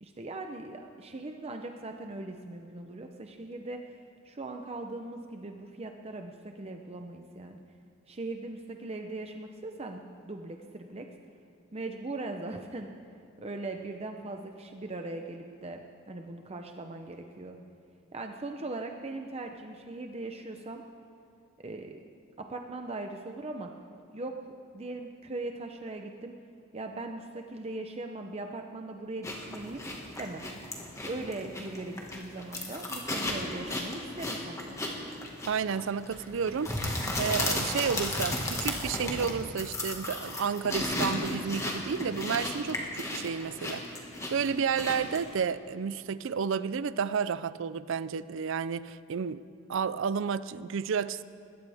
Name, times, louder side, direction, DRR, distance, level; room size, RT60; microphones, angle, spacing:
voice 1, 0.0-7.6 8.1-11.1 11.7-12.9 13.4-17.6 18.1-20.8 21.6-22.0 22.4-23.7 24.1-26.3 26.7-29.8 30.2-30.4 31.0-34.8, right 2 dB, 30° right, 4 dB, 0.7 m, -40 dB
sound 1, 29.2-45.3, left 1 dB, 15° left, 1.7 m, -34 dB
voice 2, 35.5-36.7 37.2-43.8 44.3-49.4 49.7-51.2, right 6 dB, 65° right, 16 dB, 0.4 m, -31 dB
20.5 x 16.5 x 3.5 m, 2.7 s
head